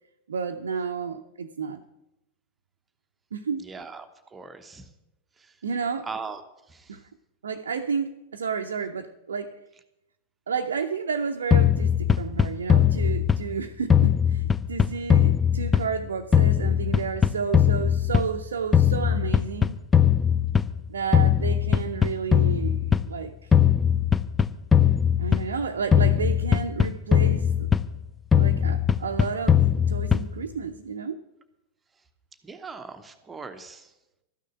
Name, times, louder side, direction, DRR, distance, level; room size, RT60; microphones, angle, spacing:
voice 1, 0.3-1.8 3.3-3.7 5.6-6.1 6.9-7.0 7.4-9.5 10.5-19.8 20.9-23.5 25.2-27.7 28.3-31.2, right 6 dB, 70° right, 3 dB, 0.6 m, -31 dB
voice 2, 3.6-4.9 6.0-6.4 6.7-6.9 32.4-33.9, right 4 dB, 15° right, 7 dB, 1.0 m, -39 dB
sound 1, 11.5-13.6 13.9-16.1 16.3-18.4 18.7-20.8 21.1-23.1 23.5-25.6 25.9-28.0 28.3-30.4, left 8 dB, 15° left, 0.5 m, -20 dB
13.0 x 6.5 x 8.8 m, 0.92 s
figure-of-eight pair, 90°, 0 cm